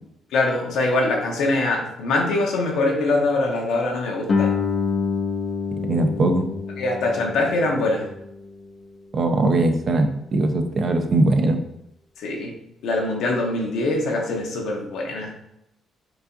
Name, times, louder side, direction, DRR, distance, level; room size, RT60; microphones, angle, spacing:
voice 1, 0.3-4.5 6.8-8.1 12.2-12.5 12.8-15.3, left 2 dB, 80° left, 0 dB, 0.7 m, -23 dB
Guitar, 4.3-9.6, left 5 dB, 50° left, 0.4 m, -28 dB
voice 2, 5.9-6.5 9.1-11.6, right 2 dB, 50° right, 5 dB, 0.5 m, -20 dB
4.6 x 2.7 x 2.6 m, 0.82 s
cardioid pair, 90°, 0 cm